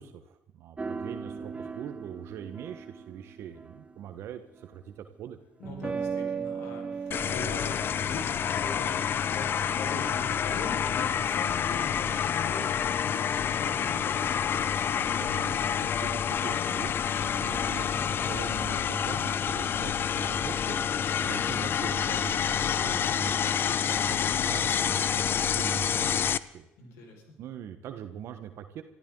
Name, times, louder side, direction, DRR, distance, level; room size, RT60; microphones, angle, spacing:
voice 1, 0.0-5.4 15.0-20.8 21.2-23.4 23.6-26.7 27.4-28.8, right 9 dB, 70° right, 8 dB, 1.2 m, -43 dB
sound 1, 0.8-4.0 5.6-7.9, right 5 dB, 25° right, 1.0 m, -37 dB
voice 2, 5.6-14.2 26.8-27.2, left 3 dB, 80° left, 2 dB, 5.0 m, -42 dB
sound 2, 7.1-26.4, left 8 dB, 50° left, 0.6 m, -28 dB
24.0 x 13.5 x 3.9 m, 0.88 s
supercardioid pair, 75°, 5 cm